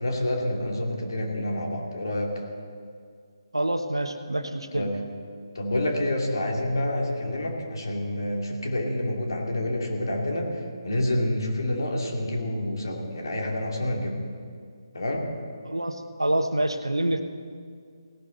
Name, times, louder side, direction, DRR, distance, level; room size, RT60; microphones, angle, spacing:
voice 1, 0.0-2.5 4.7-5.0 5.5-14.1 14.9-15.3, left 1 dB, 60° left, 0 dB, 2.7 m, -28 dB
voice 2, 3.5-4.9 15.6-17.2, right 1 dB, 80° right, 7 dB, 1.2 m, -26 dB
18.0 x 11.5 x 4.0 m, 2.1 s
figure-of-eight pair, 145°, 2 cm